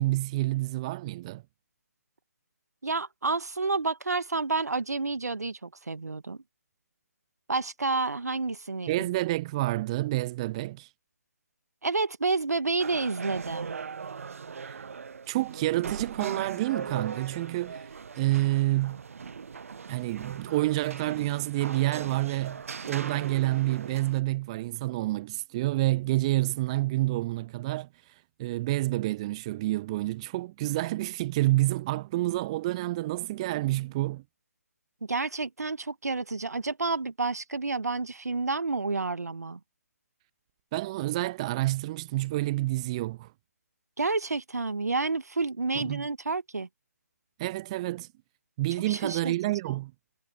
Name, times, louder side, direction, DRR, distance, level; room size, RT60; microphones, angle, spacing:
voice 1, 0.0-1.4 8.9-10.9 14.6-14.8 15.3-19.0 19.9-34.2 40.7-43.3 45.8-46.1 47.4-48.1 48.6-49.9, right 18 dB, 20° right, 0.5 m, -28 dB
voice 2, 2.8-6.4 7.5-9.0 11.8-13.7 35.1-39.6 44.0-46.7 48.9-49.3, right 3 dB, 70° right, 1.6 m, -29 dB
sound 1, 12.8-24.2, right 5 dB, 55° right, 0.9 m, -40 dB
figure-of-eight pair, 145°, 9 cm